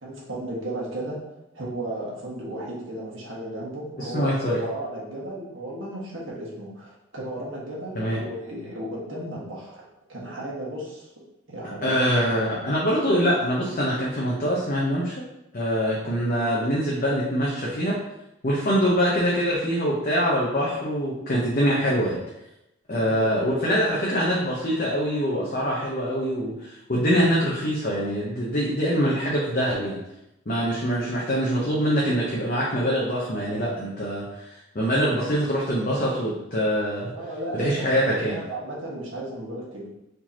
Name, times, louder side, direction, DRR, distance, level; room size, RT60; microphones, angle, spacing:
voice 1, 0.0-1.2 1.5-9.8 10.1-11.1 11.5-12.1 22.9-23.2 37.1-39.9, right 1 dB, 80° right, -5 dB, 1.6 m, -34 dB
voice 2, 4.0-4.6 7.9-8.2 11.8-15.1 15.5-17.9 18.4-22.2 22.9-30.0 30.5-37.1 37.6-38.4, equal, 45° left, -5 dB, 0.8 m, -24 dB
4.8 x 3.8 x 2.8 m, 0.89 s
head